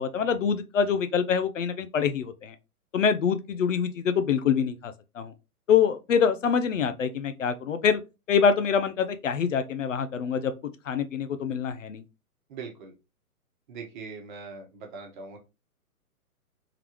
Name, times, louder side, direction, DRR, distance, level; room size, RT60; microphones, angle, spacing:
voice 1, 0.0-2.5 2.9-5.3 5.7-8.0 8.3-10.5 10.9-12.0, left 7 dB, 55° left, 0.6 m, -25 dB
voice 2, 12.5-12.9 13.7-15.4, right 5 dB, 30° right, 1.1 m, -41 dB
3.8 x 3.4 x 3.0 m
figure-of-eight pair, 130°, 45 cm